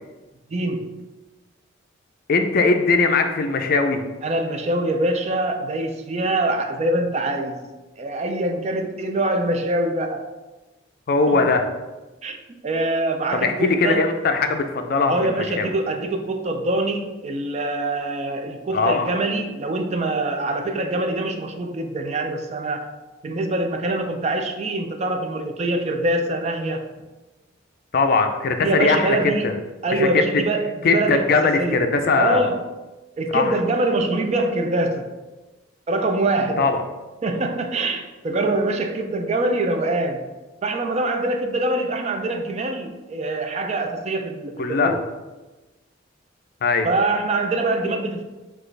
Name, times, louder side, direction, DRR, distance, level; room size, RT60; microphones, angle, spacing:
voice 1, 0.5-1.0 4.2-7.7 8.0-10.3 11.3-11.4 12.2-12.4 12.6-14.0 15.0-22.9 23.2-26.8 28.6-29.5 29.8-31.9 32.2-32.6 33.2-35.1 35.9-36.7 37.2-40.2 40.6-45.0 46.8-48.2, right 2 dB, 35° right, 5 dB, 0.3 m, -24 dB
voice 2, 2.3-4.0 11.1-11.7 13.3-15.7 18.7-19.1 27.9-29.5 29.9-30.1 30.8-32.5 33.3-33.6 36.6-36.8 44.6-45.0 46.6-46.9, left 4 dB, 50° left, 6 dB, 0.4 m, -20 dB
6.0 x 2.4 x 3.2 m, 1.1 s
head